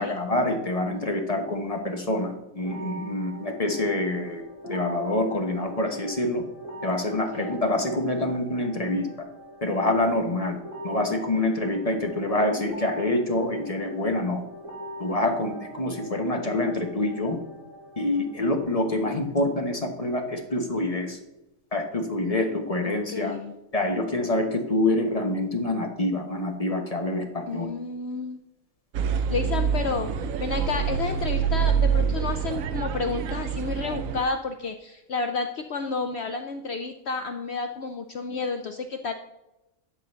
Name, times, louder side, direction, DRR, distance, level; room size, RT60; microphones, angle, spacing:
voice 1, 0.0-6.4 6.8-9.1 9.6-10.6 10.8-14.4 15.0-17.4 18.0-21.2 21.7-23.3 23.7-27.7, left 1 dB, 30° left, 3 dB, 1.1 m, -26 dB
sound 1, 2.6-18.6, left 1 dB, 60° right, 2.7 m, -41 dB
voice 2, 7.1-7.5 22.8-23.5 27.5-28.4 29.0-39.1, left 4 dB, 60° left, 6 dB, 0.8 m, -31 dB
sound 2, 28.9-34.2, right 7 dB, 75° right, 1.0 m, -26 dB
11.0 x 3.8 x 6.7 m, 0.95 s
omnidirectional pair, 1.5 m